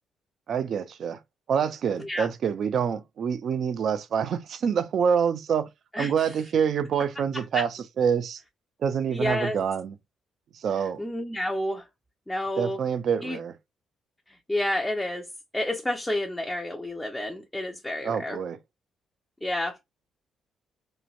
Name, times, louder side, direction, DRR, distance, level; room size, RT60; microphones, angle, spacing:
voice 1, 0.5-1.2 1.5-5.7 6.0-8.4 8.8-9.9 10.5-11.0 12.5-13.5 18.0-18.6, right 7 dB, 60° right, 0.4 m, -26 dB
voice 2, 9.1-9.6 11.0-11.9 12.3-12.8 13.2-13.4 14.5-15.3 15.5-18.4 19.4-19.8, left 1 dB, 10° left, 0.5 m, -29 dB
3.1 x 2.1 x 2.4 m
cardioid pair, 90°, 0 cm